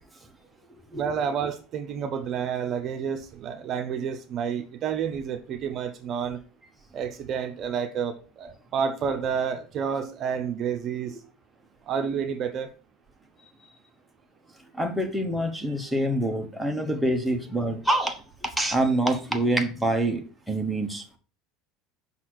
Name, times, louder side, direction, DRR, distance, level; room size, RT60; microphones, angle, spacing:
voice 1, 0.9-6.4 6.9-11.1 11.9-12.7, right 7 dB, 40° right, 6 dB, 0.8 m, -29 dB
voice 2, 14.7-21.1, right 1 dB, ahead, 2 dB, 1.1 m, -26 dB
5.7 x 4.2 x 6.3 m, 0.37 s
supercardioid pair, 135°, 0 cm